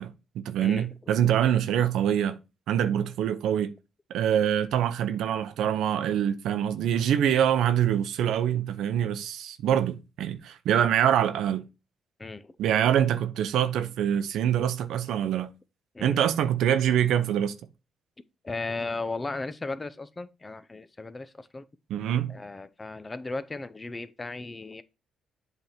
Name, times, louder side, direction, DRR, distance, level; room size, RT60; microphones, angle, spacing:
voice 1, 0.0-2.4 2.7-3.7 4.1-11.6 12.6-15.5 16.0-17.5 21.9-22.3, right 10 dB, 80° right, 0.7 m, -25 dB
voice 2, 12.2-12.5 15.9-16.2 18.4-21.6 22.3-24.8, left 3 dB, 25° left, 0.6 m, -36 dB
8.0 x 3.5 x 4.4 m
cardioid pair, 90°, 0 cm